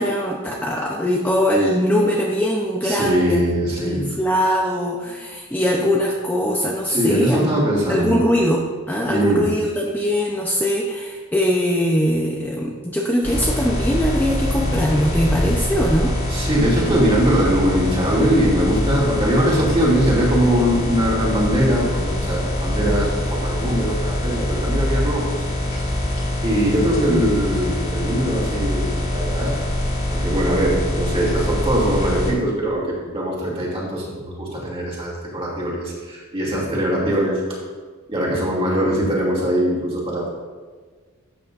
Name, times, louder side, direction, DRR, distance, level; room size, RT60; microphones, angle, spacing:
voice 1, 0.0-3.4 3.8-7.5 7.9-16.2 27.0-27.2, equal, 10° left, -2 dB, 0.7 m, -21 dB
voice 2, 2.8-4.1 6.9-8.2 9.1-9.5 16.3-25.3 26.4-29.5 30.1-37.4 38.1-40.3, equal, 25° right, -5 dB, 2.6 m, -21 dB
sound 1, 13.2-32.3, left 1 dB, 45° left, 2.5 m, -24 dB
12.5 x 8.4 x 2.6 m, 1.5 s
head